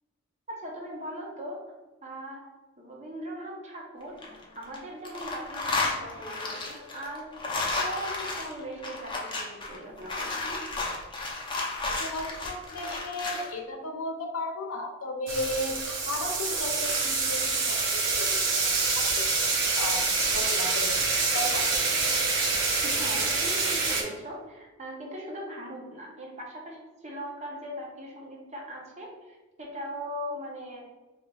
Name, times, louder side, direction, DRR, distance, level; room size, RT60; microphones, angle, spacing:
voice 1, 0.5-1.6 2.0-2.4 2.8-7.3 7.8-10.6 22.8-30.8, equal, 35° right, -1 dB, 0.8 m, -39 dB
sound 1, 4.0-4.8 5.0-13.5, left 3 dB, 25° left, 0.6 m, -32 dB
voice 2, 12.0-19.3 19.8-20.0 20.3-21.0 21.3-21.7, left 2 dB, 85° left, 2 dB, 0.7 m, -35 dB
sound 2, 15.3-24.0, right 4 dB, 65° right, 0.9 m, -26 dB
5.0 x 2.9 x 2.4 m, 1.2 s
head